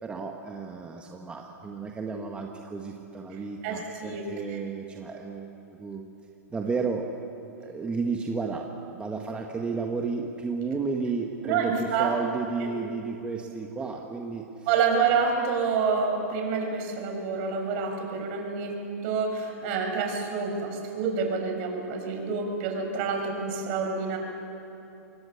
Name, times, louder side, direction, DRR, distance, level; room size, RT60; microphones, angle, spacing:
voice 1, 0.0-6.1 6.5-7.1 7.6-14.5, right 4 dB, 15° right, 1 dB, 1.6 m, -32 dB
voice 2, 3.6-4.2 11.4-12.1 14.7-18.7 19.0-24.2, right 5 dB, 50° right, 2 dB, 6.1 m, -27 dB
27.0 x 22.0 x 7.2 m, 2.9 s
hypercardioid pair, 130°, 8 cm